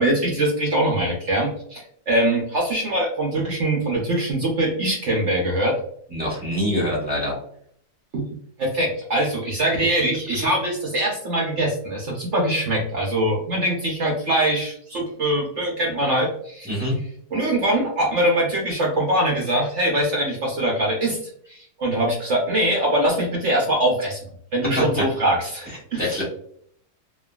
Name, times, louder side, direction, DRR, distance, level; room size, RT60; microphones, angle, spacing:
voice 1, 0.0-5.7 8.1-8.2 8.6-16.7 17.3-21.2 21.5-24.2 24.5-26.2, right 1 dB, 75° right, -2 dB, 0.6 m, -23 dB
voice 2, 6.1-7.3 16.6-16.9 24.8-24.9 26.0-26.2, equal, 10° right, -6 dB, 0.4 m, -24 dB
3.3 x 2.1 x 2.2 m, 0.65 s
omnidirectional pair, 1.9 m